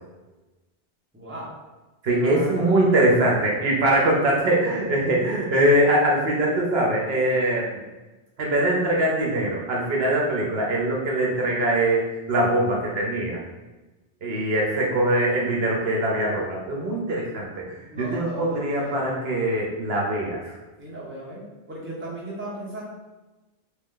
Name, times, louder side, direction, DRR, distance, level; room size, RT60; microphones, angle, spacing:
voice 1, 1.1-1.5 2.1-2.8 17.9-19.2 20.8-22.8, equal, 10° right, -6 dB, 0.8 m, -36 dB
voice 2, 2.0-7.7 8.4-12.0 12.3-13.4 14.2-17.7 18.0-20.5, right 1 dB, 70° right, -2 dB, 0.9 m, -22 dB
3.0 x 2.7 x 3.6 m, 1.1 s
omnidirectional pair, 1.1 m